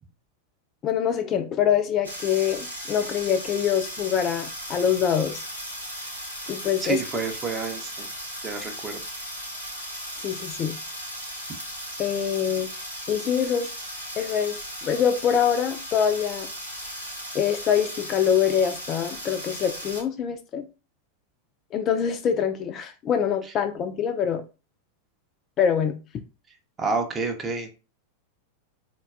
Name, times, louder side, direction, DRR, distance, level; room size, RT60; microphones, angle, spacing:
voice 1, 0.8-5.4 6.5-7.0 10.2-10.8 12.0-12.7 13.1-13.7 14.2-16.5 17.3-20.7 21.7-24.4 25.6-25.9, left 8 dB, 30° left, 0.3 m, -24 dB
sound 1, 2.0-20.0, equal, 90° right, 0.9 m, -36 dB
voice 2, 6.8-8.1 8.4-9.0 26.8-27.7, right 4 dB, 20° right, 0.6 m, -29 dB
3.9 x 2.2 x 2.4 m
figure-of-eight pair, 90°, 0 cm